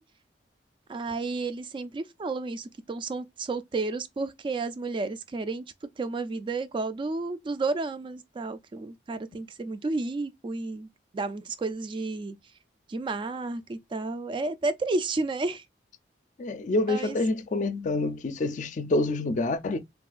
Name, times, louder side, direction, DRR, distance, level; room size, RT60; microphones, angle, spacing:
voice 1, 0.9-5.6 6.0-10.9 11.1-12.4 12.9-15.6 16.9-17.2, right 3 dB, 30° right, 0.3 m, -31 dB
voice 2, 16.4-19.8, left 2 dB, 45° left, 0.4 m, -27 dB
3.6 x 2.3 x 2.4 m
head